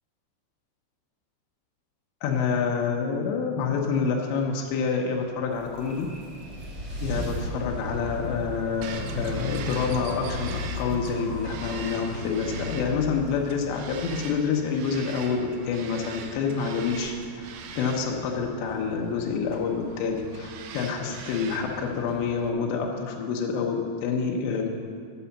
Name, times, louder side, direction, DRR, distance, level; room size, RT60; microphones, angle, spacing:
voice 1, 2.2-6.1 7.0-17.5 17.8-24.7, left 5 dB, 80° left, 1 dB, 3.1 m, -27 dB
sound 1, 5.4-14.6, left 1 dB, 40° right, 0.9 m, -35 dB
Bird vocalization bird call bird song, 8.8-22.5, right 6 dB, 85° right, 2.1 m, -42 dB
10.5 x 6.2 x 7.0 m, 2.2 s
omnidirectional pair, 5.1 m